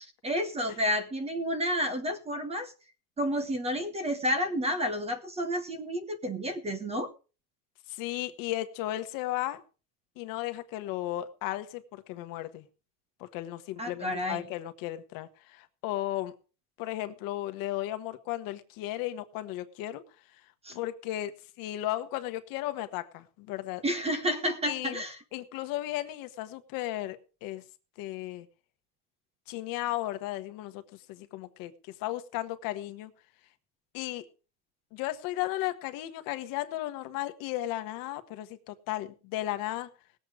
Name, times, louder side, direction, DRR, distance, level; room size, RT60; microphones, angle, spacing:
voice 1, 0.0-2.7 3.2-7.1 13.8-14.5 20.6-20.8 23.8-25.2, equal, 15° right, 1.0 m, -30 dB
voice 2, 7.9-9.6 10.2-12.6 13.2-16.3 16.8-20.0 20.7-21.3 21.6-23.8 24.7-25.0 25.3-27.6 28.0-28.5 29.5-30.8 31.1-31.7 32.0-33.1 33.9-34.2 34.9-39.9, left 15 dB, 45° left, 1.3 m, -35 dB
19.0 x 7.9 x 4.9 m
supercardioid pair, 150°, 46 cm